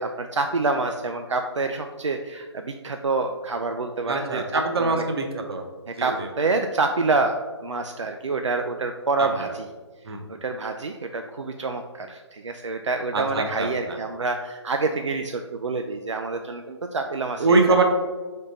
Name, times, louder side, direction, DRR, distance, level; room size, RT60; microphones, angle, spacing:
voice 1, 0.0-5.0 5.9-7.3 7.6-9.7 10.3-17.5, right 3 dB, 85° right, 4 dB, 0.4 m, -27 dB
voice 2, 4.1-5.6 6.0-6.3 9.2-9.3 10.1-10.2 13.1-14.0 17.4-17.9, right 3 dB, 60° right, 4 dB, 0.8 m, -23 dB
3.7 x 3.6 x 4.0 m, 1.3 s
figure-of-eight pair, 140°, 15 cm